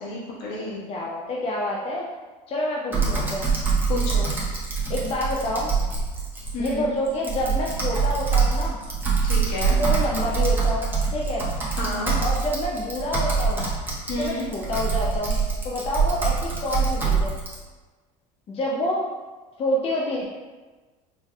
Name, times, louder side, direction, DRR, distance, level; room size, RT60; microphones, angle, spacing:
voice 1, 0.0-0.8 3.9-4.3 6.5-6.9 9.2-9.8 11.7-12.1 14.1-14.4, left 2 dB, 65° left, -5 dB, 1.4 m, -30 dB
voice 2, 0.9-2.0 2.5-3.5 4.9-5.7 6.6-8.8 9.8-11.5 12.2-13.7 14.2-15.4 15.6-17.3 18.5-19.1 19.6-20.3, left 1 dB, 35° left, -3 dB, 0.6 m, -27 dB
Typing, 2.9-17.6, right 5 dB, 10° right, 1.1 m, -24 dB
4.4 x 3.3 x 2.3 m, 1.3 s
supercardioid pair, 100°, 18 cm